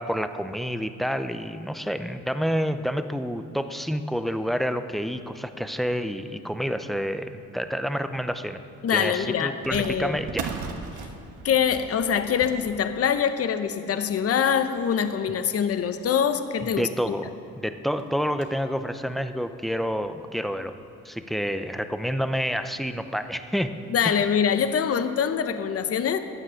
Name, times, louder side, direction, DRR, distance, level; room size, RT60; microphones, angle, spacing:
voice 1, 0.0-8.6 8.9-10.5 16.8-20.7 21.0-23.7 24.0-24.3, equal, ahead, 9 dB, 0.7 m, -28 dB
voice 2, 8.8-10.2 11.4-17.1 23.9-26.2, left 7 dB, 50° left, 9 dB, 0.9 m, -24 dB
sound 1, 9.6-16.6 17.1-17.2 17.5-17.6 18.0-18.7 19.2-19.3 20.2-20.3 20.6-20.8 22.1-22.4 22.8-22.9 23.5-23.7, right 5 dB, 80° right, 1.3 m, -40 dB
15.5 x 9.6 x 6.4 m, 2.7 s
cardioid pair, 90°, 30 cm